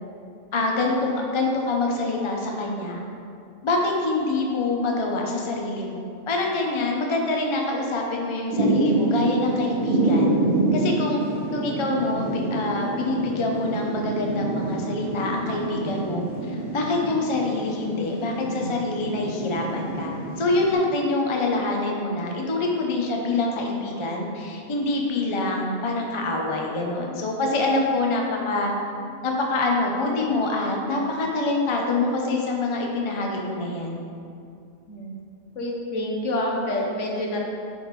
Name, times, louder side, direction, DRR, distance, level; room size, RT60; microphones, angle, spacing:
voice 1, 0.5-1.0 1.3-3.0 3.6-10.4 10.7-11.2 11.5-28.7 29.2-34.0, left 2 dB, 35° left, 0 dB, 0.5 m, -25 dB
Thunder / Rain, 8.5-20.7, right 2 dB, 30° right, 1.8 m, -27 dB
voice 2, 35.5-37.5, left 1 dB, 65° left, -1 dB, 1.2 m, -27 dB
10.5 x 3.6 x 3.1 m, 2.5 s
omnidirectional pair, 1.4 m